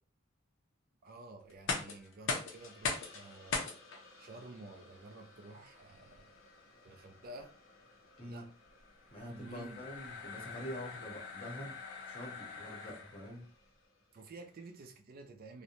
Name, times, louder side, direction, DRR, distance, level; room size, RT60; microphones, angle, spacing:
voice 1, 1.0-3.7 4.2-6.3 6.8-7.5 8.3-8.5 9.2-9.8 14.1-15.6, right 2 dB, 45° right, 0.4 m, -51 dB
sound 1, 1.5-13.4, left 4 dB, 65° left, 0.6 m, -42 dB
Hiss, 2.4-15.0, left 2 dB, 85° left, 1.0 m, -62 dB
voice 2, 8.2-8.5 9.1-11.8 12.1-13.5, equal, 30° left, 0.8 m, -45 dB
2.5 x 2.1 x 2.8 m
head